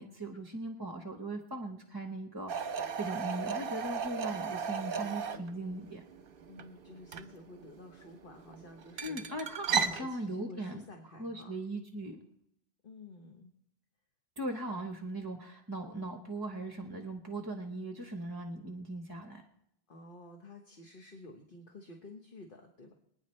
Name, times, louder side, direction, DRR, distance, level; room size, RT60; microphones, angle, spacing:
voice 1, 0.0-6.0 9.0-12.2 14.4-19.5, right 2 dB, 20° right, 4 dB, 1.0 m, -39 dB
sound 1, 2.5-10.0, right 6 dB, 60° right, 0.9 m, -36 dB
voice 2, 6.5-9.2 9.8-11.5 12.8-13.5 19.9-22.9, left 2 dB, 55° left, 2 dB, 1.4 m, -51 dB
25.0 x 9.7 x 3.3 m, 0.76 s
omnidirectional pair, 1.1 m